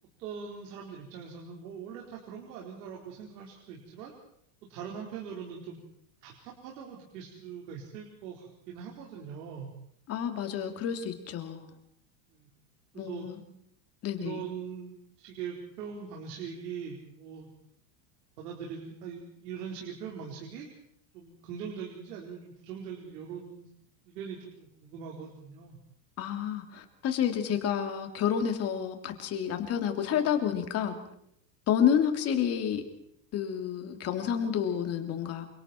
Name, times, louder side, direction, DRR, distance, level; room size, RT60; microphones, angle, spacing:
voice 1, 0.2-4.1 4.7-5.8 6.2-9.7 12.3-12.5 12.9-13.3 14.2-17.5 18.4-20.7 21.1-23.7 24.1-25.8, right 7 dB, 75° right, -1 dB, 4.7 m, -41 dB
voice 2, 10.1-11.7 13.0-13.4 14.0-14.4 26.2-31.0 31.7-32.8 33.3-35.5, left 8 dB, 30° left, 6 dB, 2.9 m, -29 dB
28.5 x 25.0 x 4.5 m, 0.70 s
supercardioid pair, 160°, 49 cm